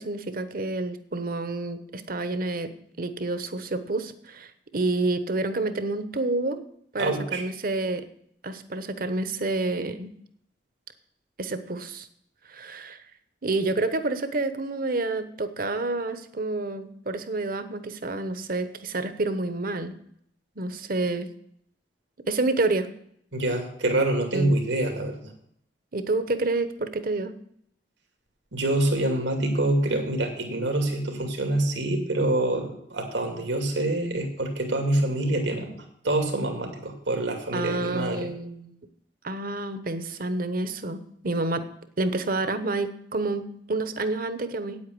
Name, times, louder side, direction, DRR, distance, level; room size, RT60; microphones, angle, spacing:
voice 1, 0.0-2.7 3.0-6.6 6.9-8.0 8.4-10.1 11.4-12.1 12.5-13.0 13.4-19.9 20.6-21.3 22.3-22.9 24.3-24.5 25.9-27.3 37.5-38.7 39.2-41.0 41.2-41.6 42.0-44.8, right 2 dB, 55° right, 11 dB, 1.1 m, -28 dB
voice 2, 7.0-7.4 23.3-25.2 28.5-38.3, right 1 dB, 85° right, 3 dB, 2.5 m, -26 dB
9.0 x 8.5 x 7.8 m, 0.70 s
head